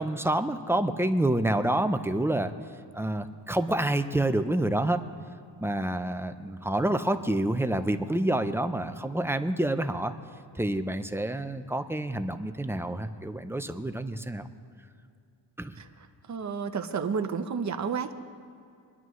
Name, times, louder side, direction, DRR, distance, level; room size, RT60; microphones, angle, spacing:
voice 1, 0.0-2.5 2.9-5.0 5.6-10.1 10.5-14.5 15.6-15.7, right 1 dB, 5° right, 8 dB, 0.4 m, -28 dB
voice 2, 16.3-18.1, right 6 dB, 40° right, 7 dB, 0.7 m, -31 dB
23.5 x 11.0 x 3.1 m, 2.4 s
wide cardioid pair, 110°, 45 cm